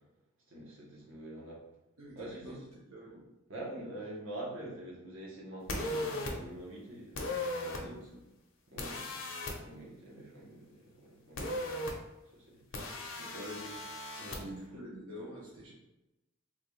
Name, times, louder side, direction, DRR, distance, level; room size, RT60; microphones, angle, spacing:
voice 1, 0.5-1.6 2.1-2.6 3.5-8.0 8.7-11.7 12.3-12.6 14.2-14.5, right 1 dB, 70° right, -4 dB, 1.0 m, -46 dB
voice 2, 2.0-3.2 7.7-8.2 12.7-12.8 13.2-13.8 14.4-15.7, equal, 85° right, -6 dB, 0.7 m, -46 dB
sound 1, 5.7-6.3 7.2-7.8 8.8-9.5 11.4-11.9 12.7-14.4, left 1 dB, 65° left, 0.6 m, -37 dB
3.4 x 2.3 x 3.1 m, 0.96 s
head